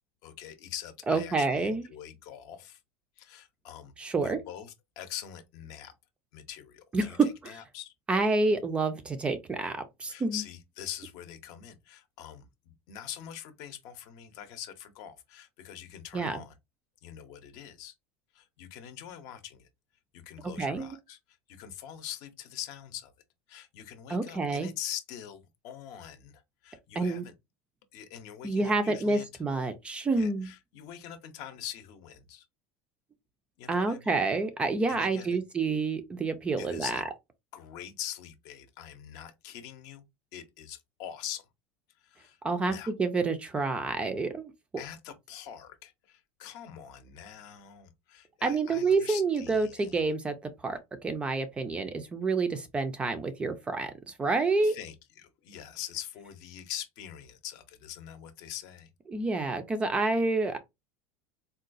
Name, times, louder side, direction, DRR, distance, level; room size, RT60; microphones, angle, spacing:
voice 1, 0.2-2.8 3.2-3.9 4.2-5.9 6.3-7.9 10.1-16.5 17.0-17.9 18.3-19.7 20.1-21.2 21.5-23.1 23.5-27.3 27.9-29.4 30.2-32.5 33.6-34.1 34.9-35.4 36.6-37.1 37.5-40.0 40.3-41.5 42.0-42.4 42.7-42.9 44.8-50.1 54.6-58.9, left 10 dB, 55° left, 0.6 m, -43 dB
voice 2, 1.1-1.9 4.0-4.4 6.9-7.3 8.1-10.4 16.1-16.4 20.6-21.0 24.1-24.7 27.0-27.3 28.4-30.5 33.7-37.0 42.4-44.5 48.4-54.8 59.1-60.6, right 3 dB, 15° right, 0.3 m, -28 dB
3.8 x 2.3 x 2.5 m
supercardioid pair, 150°, 7 cm